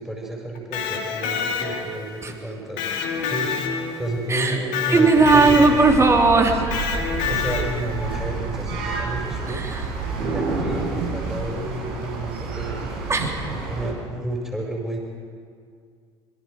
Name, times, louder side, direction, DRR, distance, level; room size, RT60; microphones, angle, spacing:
voice 1, 0.0-3.6 4.0-5.7 7.3-9.7 10.2-13.0 13.5-15.0, right 1 dB, 5° right, -1 dB, 5.1 m, -31 dB
Electric guitar, 0.5-2.1 2.8-4.2 4.7-6.0 6.7-7.9, left 6 dB, 60° left, 2.7 m, -27 dB
voice 2, 4.3-4.6 4.9-6.6 9.5-9.9 13.1-13.4, right 3 dB, 20° right, 2 dB, 3.1 m, -17 dB
sound 1, 5.1-13.9, right 4 dB, 70° right, 5.3 m, -29 dB
25.5 x 23.0 x 5.1 m, 2.1 s
figure-of-eight pair, 65°, 14 cm